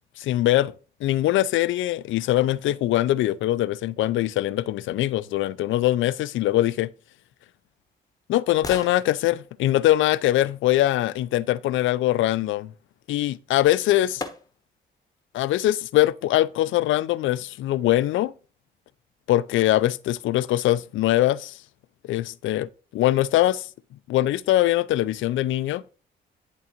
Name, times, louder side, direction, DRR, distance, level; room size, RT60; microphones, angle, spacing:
voice 1, 0.2-0.7 1.0-6.9 8.3-12.7 13.1-14.2 15.3-18.3 19.3-21.6 22.0-23.7 24.1-25.8, left 14 dB, 75° left, 0.4 m, -22 dB
sound 1, 7.3-11.2 13.3-13.4 14.2-14.9 15.4-15.5, left 3 dB, 20° left, 1.0 m, -42 dB
10.5 x 3.8 x 2.9 m
cardioid pair, 90°, 20 cm